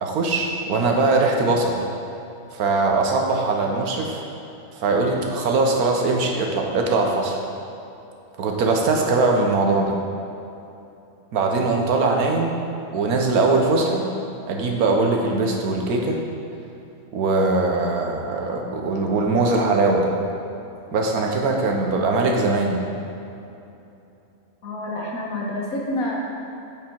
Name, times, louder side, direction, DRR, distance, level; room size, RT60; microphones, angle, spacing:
voice 1, 0.0-1.8 2.5-4.2 4.7-7.4 8.4-10.0 11.3-12.5 12.9-14.0 14.5-16.2 17.1-20.1 20.9-22.8, right 3 dB, 85° right, 1 dB, 1.4 m, -21 dB
voice 2, 24.6-26.1, left 1 dB, 75° left, -3 dB, 1.7 m, -28 dB
8.5 x 5.0 x 4.5 m, 2.8 s
omnidirectional pair, 1.5 m